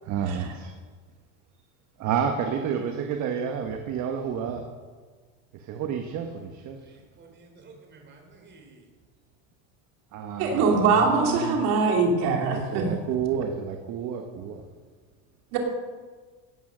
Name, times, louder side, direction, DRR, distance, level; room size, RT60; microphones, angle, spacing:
voice 1, 0.1-0.7 2.0-4.7 5.6-6.8 10.1-11.6 12.5-14.6, right 7 dB, 50° right, 4 dB, 1.4 m, -30 dB
voice 2, 6.8-8.8, right 3 dB, 30° right, 3 dB, 3.4 m, -52 dB
voice 3, 10.4-12.8 15.5-15.6, right 4 dB, 70° right, 1 dB, 2.9 m, -22 dB
16.5 x 9.1 x 6.3 m, 1.5 s
cardioid pair, 135°, 36 cm